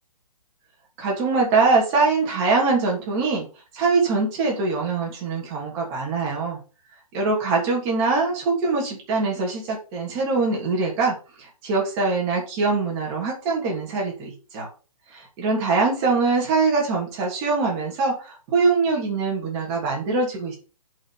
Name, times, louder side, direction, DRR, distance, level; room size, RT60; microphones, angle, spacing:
voice 1, 1.0-3.5 3.7-6.6 7.1-14.7 15.1-20.5, right 4 dB, 15° right, -2 dB, 2.9 m, -23 dB
8.0 x 5.7 x 5.8 m, 0.35 s
hypercardioid pair, 175°, 19 cm